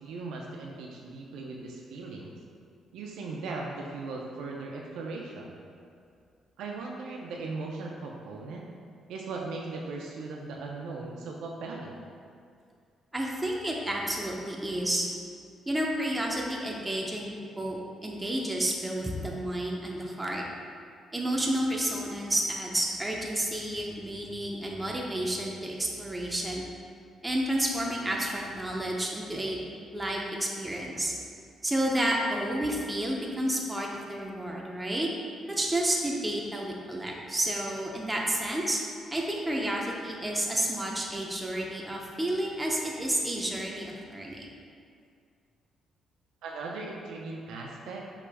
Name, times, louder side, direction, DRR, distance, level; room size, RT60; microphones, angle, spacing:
voice 1, 0.0-2.3 2.9-5.6 6.6-8.7 9.1-12.0 46.4-48.0, right 3 dB, 90° right, -1 dB, 0.4 m, -38 dB
voice 2, 13.1-15.1 15.7-20.4 21.1-26.6 27.2-29.6 29.9-31.1 31.6-35.1 35.5-38.8 39.1-44.5, right 1 dB, 10° right, -2 dB, 0.4 m, -30 dB
4.9 x 3.0 x 3.3 m, 2.3 s
cardioid pair, 140°, 0 cm